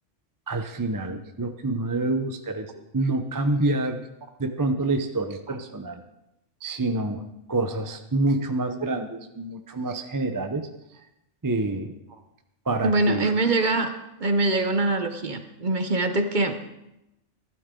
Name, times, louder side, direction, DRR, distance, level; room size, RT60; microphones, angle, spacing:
voice 1, 0.5-4.1 4.4-6.0 6.6-7.2 7.5-10.7 11.4-11.9 12.7-13.3, right 2 dB, 20° right, 6 dB, 0.6 m, -27 dB
voice 2, 12.8-13.9 14.2-16.6, right 2 dB, 45° right, 7 dB, 1.0 m, -23 dB
15.0 x 12.5 x 3.8 m, 0.90 s
omnidirectional pair, 1.3 m